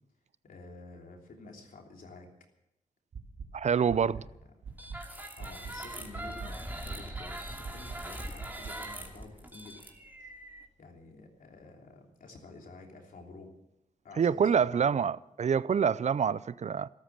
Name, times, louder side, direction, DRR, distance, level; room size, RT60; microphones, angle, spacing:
voice 1, 0.4-2.3 3.8-4.3 5.4-9.9 10.8-13.5 14.0-15.0, left 3 dB, 75° left, 3.2 m, -50 dB
sound 1, 3.1-3.5 3.9-4.2 4.6-5.0 5.4-5.7 6.1-6.5 6.9-7.2 7.6-8.0 8.4-8.7, right 6 dB, 75° right, 2.3 m, -42 dB
voice 2, 3.5-4.2 14.2-16.9, right 7 dB, 55° right, 0.5 m, -26 dB
sound 2, 4.7-10.6, right 1 dB, 15° right, 2.9 m, -42 dB
sound 3, 10.0-12.5 12.7-12.8, left 3 dB, 60° left, 3.0 m, -56 dB
13.5 x 13.0 x 7.4 m
cardioid pair, 60°, 14 cm